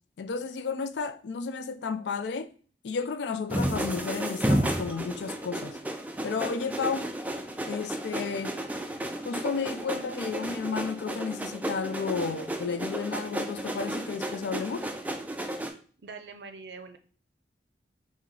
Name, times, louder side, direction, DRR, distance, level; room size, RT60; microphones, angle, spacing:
voice 1, 0.2-2.5 2.8-5.8 6.2-7.1 7.7-8.6 9.2-14.9, left 5 dB, 80° left, 0.4 m, -32 dB
sound 1, 3.5-15.7, right 1 dB, 10° right, 0.3 m, -32 dB
voice 2, 16.0-17.0, right 4 dB, 70° right, 0.5 m, -43 dB
3.7 x 2.7 x 3.2 m
head